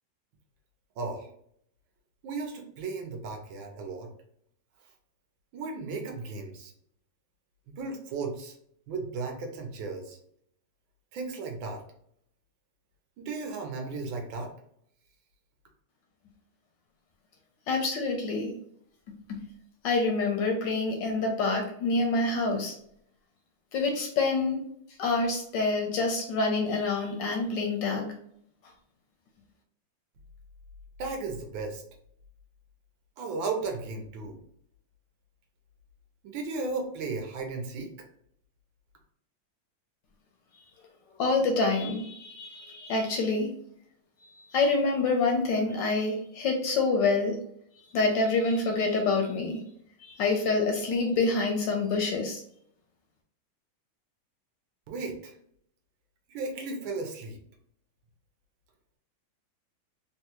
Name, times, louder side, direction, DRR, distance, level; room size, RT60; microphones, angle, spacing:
voice 1, 1.0-1.3 2.2-4.1 5.5-6.7 7.8-8.5 8.9-10.2 11.1-11.8 13.2-14.5 31.0-31.8 33.2-34.4 36.2-37.9 54.9-55.3 56.3-57.4, right 3 dB, 70° right, 3 dB, 1.3 m, -35 dB
voice 2, 17.7-18.5 19.3-19.4 19.8-22.7 23.7-24.6 25.0-28.1 41.2-43.5 44.5-47.4 47.9-49.6 50.0-52.4, left 3 dB, 75° left, 2 dB, 1.1 m, -27 dB
3.8 x 2.2 x 2.8 m, 0.68 s
omnidirectional pair, 2.3 m